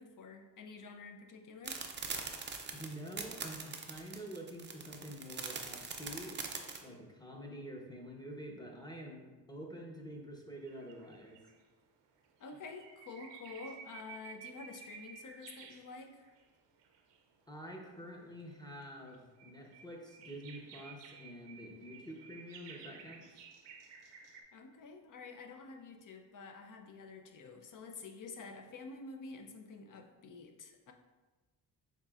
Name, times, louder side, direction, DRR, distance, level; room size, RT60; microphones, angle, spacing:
voice 1, 0.0-1.8 12.4-16.3 24.5-30.9, left 4 dB, 45° left, 4 dB, 0.6 m, -49 dB
sound 1, 1.6-6.8, right 5 dB, 25° right, 0.5 m, -41 dB
voice 2, 2.7-6.4 6.8-11.4 17.5-23.4, equal, 10° left, 0 dB, 0.9 m, -47 dB
sound 2, 10.6-11.6 12.2-16.4 16.8-17.4 18.2-24.4, right 7 dB, 70° right, 0.7 m, -54 dB
7.3 x 2.7 x 2.4 m, 1.2 s
cardioid pair, 85°, 44 cm